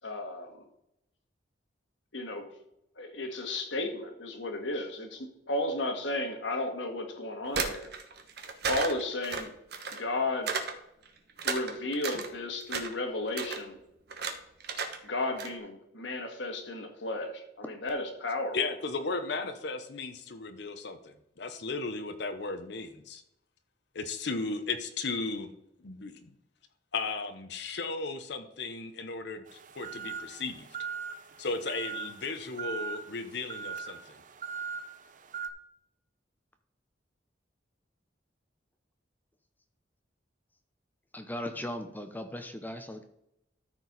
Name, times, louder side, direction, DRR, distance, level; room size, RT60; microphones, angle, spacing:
voice 1, 0.0-0.7 2.1-2.5 3.0-7.9 8.6-9.5 9.9-10.6 11.4-13.8 15.0-18.6, left 2 dB, 85° left, 4 dB, 1.8 m, -34 dB
sound 1, 7.4-10.0 10.5-10.7 11.1-12.3 12.6-13.0 13.3-13.6 14.1-14.3 14.6-15.0 15.2-15.5, right 5 dB, 60° right, 1.0 m, -33 dB
voice 2, 18.5-23.2 23.9-25.5 25.8-26.3 26.9-30.7 31.4-34.2, left 3 dB, 65° left, 8 dB, 0.8 m, -35 dB
sound 2, 29.5-35.5, right 6 dB, 45° right, 0.6 m, -40 dB
voice 3, 41.1-43.0, left 1 dB, 10° left, 7 dB, 0.7 m, -38 dB
13.5 x 4.6 x 4.0 m, 0.81 s
head